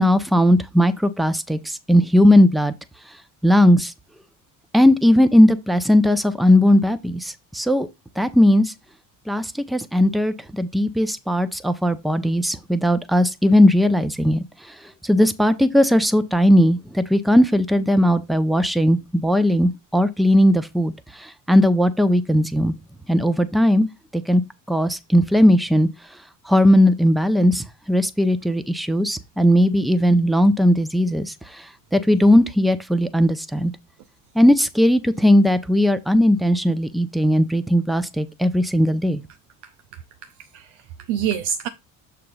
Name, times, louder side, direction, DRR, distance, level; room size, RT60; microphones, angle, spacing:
voice 1, 0.0-1.6 1.9-2.7 3.4-3.9 4.7-7.9 8.2-8.7 9.3-14.4 15.1-20.9 21.5-22.7 23.1-23.9 24.3-24.4 24.7-25.9 26.5-31.3 31.9-33.7 34.4-39.2, equal, ahead, 0.6 m, -17 dB
voice 2, 39.9-41.7, right 9 dB, 80° right, 0.6 m, -28 dB
6.6 x 3.0 x 5.5 m
supercardioid pair, 65°, 46 cm